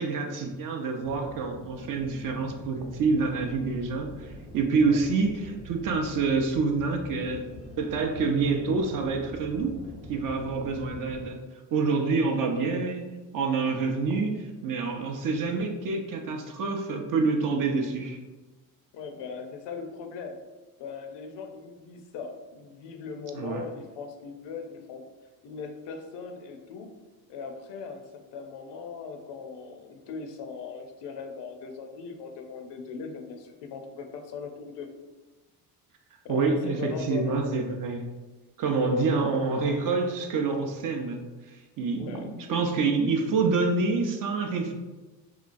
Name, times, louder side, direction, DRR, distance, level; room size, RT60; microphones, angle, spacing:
voice 1, 0.0-7.5 7.8-9.8 10.1-11.4 11.7-13.1 13.3-18.2 23.3-23.6 36.3-38.0 38.6-41.2 41.5-44.7, right 4 dB, 45° right, 3 dB, 0.5 m, -27 dB
sound 1, 1.0-11.3, left 1 dB, 25° right, 0.9 m, -45 dB
voice 2, 12.1-12.4 18.9-20.4 20.8-25.1 25.4-26.9 27.3-28.0 28.3-34.9 36.2-37.4 38.7-38.9 42.0-42.3, left 5 dB, 65° left, 5 dB, 0.6 m, -39 dB
2.9 x 2.3 x 2.5 m, 1.2 s
supercardioid pair, 85°, 45 cm